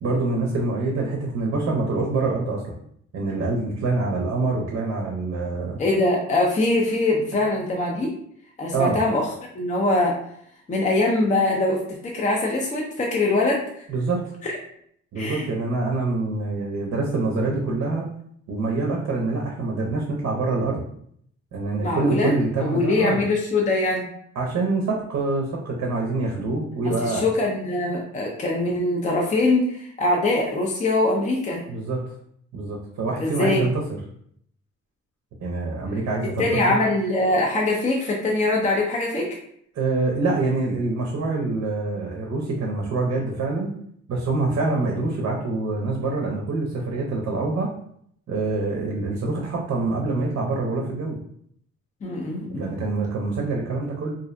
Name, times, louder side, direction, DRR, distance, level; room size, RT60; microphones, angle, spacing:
voice 1, 0.0-2.8 3.1-5.8 8.7-9.0 13.9-14.2 15.1-18.0 18.5-20.8 21.5-23.2 24.4-27.2 31.7-32.1 32.5-33.8 35.4-36.8 39.7-43.7 44.1-47.7 48.3-51.2 52.6-54.2, right 3 dB, 55° right, -1 dB, 0.6 m, -25 dB
voice 2, 5.8-8.1 8.6-9.3 9.5-10.2 10.7-13.6 14.4-14.5 15.2-15.4 21.8-22.3 22.6-24.1 26.8-31.6 33.2-33.6 36.4-39.3 52.0-52.7, left 2 dB, 25° left, -1 dB, 0.4 m, -23 dB
2.5 x 2.0 x 2.5 m, 0.67 s
cardioid pair, 90°, 30 cm